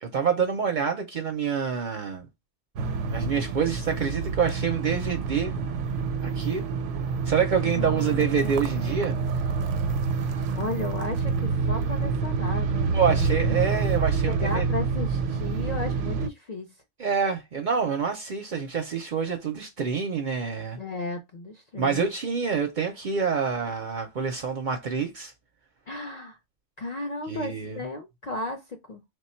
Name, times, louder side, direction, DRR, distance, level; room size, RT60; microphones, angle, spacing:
voice 1, 0.0-2.3 3.1-5.6 6.2-6.6 7.3-9.2 12.9-14.7 17.0-20.8 21.8-25.3 27.3-27.8, right 6 dB, 55° right, 0.6 m, -27 dB
sound 1, 2.8-16.3, right 5 dB, 80° right, 0.9 m, -27 dB
voice 2, 7.6-8.6 10.5-13.6 14.3-16.7 20.8-22.1 25.9-26.4 26.8-29.0, left 2 dB, 50° left, 0.5 m, -34 dB
3.2 x 2.2 x 4.3 m
omnidirectional pair, 1.2 m